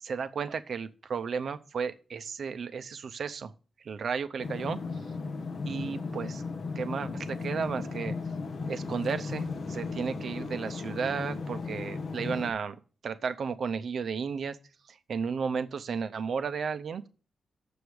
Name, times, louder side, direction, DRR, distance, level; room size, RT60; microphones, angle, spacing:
voice 1, 0.0-3.5 3.8-4.8 5.7-6.4 6.7-8.1 8.7-12.8 13.0-14.6 14.9-17.0, right 6 dB, 50° right, 0.6 m, -33 dB
sound 1, 4.4-12.5, left 4 dB, 50° left, 0.8 m, -36 dB
7.0 x 4.9 x 6.3 m
wide cardioid pair, 180°, 0 cm